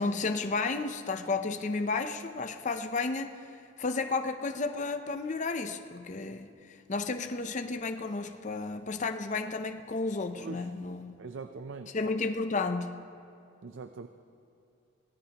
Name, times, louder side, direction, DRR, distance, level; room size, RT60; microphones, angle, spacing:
voice 1, 0.0-3.4 3.8-11.2 11.9-13.0, left 3 dB, 40° left, 7 dB, 0.6 m, -32 dB
voice 2, 10.4-10.7 11.2-11.9 13.6-14.1, right 4 dB, 70° right, 8 dB, 0.5 m, -42 dB
24.5 x 17.5 x 2.9 m, 2.5 s
head